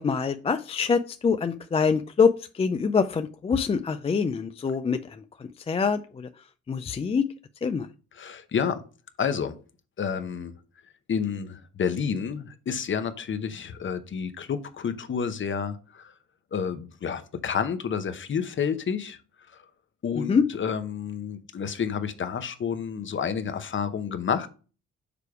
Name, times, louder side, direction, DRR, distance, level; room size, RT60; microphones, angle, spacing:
voice 1, 0.0-5.0 5.4-6.3 6.7-7.2 7.6-7.9 20.2-20.4, left 5 dB, 20° left, 0.3 m, -25 dB
voice 2, 8.1-8.8 9.2-9.6 10.0-10.5 11.1-16.1 16.5-19.2 19.5-19.6 20.0-24.5, left 7 dB, 40° left, 0.8 m, -30 dB
6.8 x 3.3 x 4.8 m
cardioid pair, 90°, 30 cm